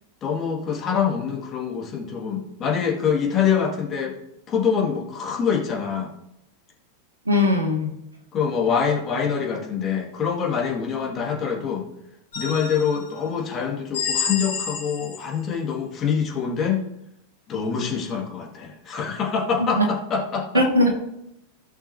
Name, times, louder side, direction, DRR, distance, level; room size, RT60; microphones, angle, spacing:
voice 1, 0.2-4.2 4.5-6.1 8.3-11.8 12.3-16.8 17.5-20.6, left 6 dB, 30° left, 0 dB, 2.1 m, -25 dB
voice 2, 7.3-7.9 19.8-19.9 20.5-20.9, left 1 dB, 75° right, 3 dB, 1.8 m, -19 dB
sound 1, 12.3-13.1 13.9-15.4, left 6 dB, 60° left, 3.8 m, -29 dB
15.0 x 6.0 x 2.8 m, 0.83 s
figure-of-eight pair, 90°, 0 cm